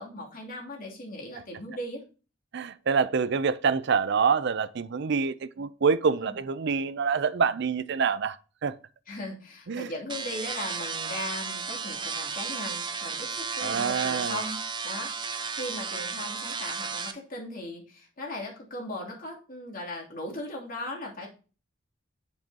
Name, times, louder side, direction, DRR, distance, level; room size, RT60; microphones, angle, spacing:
voice 1, 0.0-2.0 6.2-6.3 9.1-21.3, left 1 dB, 45° left, 2.9 m, -38 dB
voice 2, 2.5-8.4 8.6-8.7 9.7-9.9 13.6-14.4, right 5 dB, 60° right, 0.5 m, -26 dB
sound 1, 10.1-17.1, right 5 dB, 25° right, 0.8 m, -33 dB
7.7 x 7.3 x 2.8 m
head